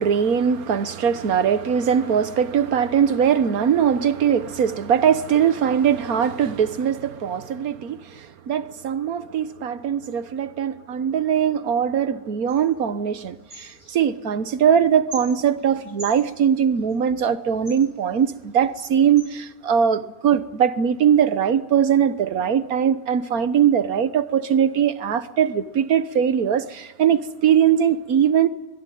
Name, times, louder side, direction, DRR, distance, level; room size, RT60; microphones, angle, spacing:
voice 1, 0.0-28.5, right 8 dB, 80° right, 1.6 m, -21 dB
sound 1, 12.5-19.4, right 2 dB, 30° right, 7.6 m, -45 dB
23.5 x 21.5 x 9.3 m
omnidirectional pair, 1.5 m